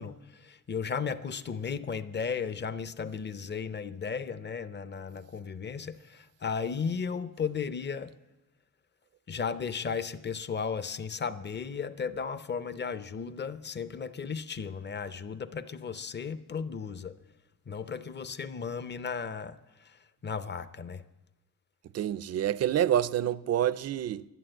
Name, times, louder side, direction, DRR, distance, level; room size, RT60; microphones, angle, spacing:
voice 1, 0.0-8.1 9.3-17.1 17.7-19.6 20.2-21.0, left 6 dB, 30° left, 0.6 m, -35 dB
voice 2, 21.9-24.3, right 11 dB, 45° right, 0.4 m, -27 dB
11.5 x 11.0 x 7.7 m
wide cardioid pair, 135°, 36 cm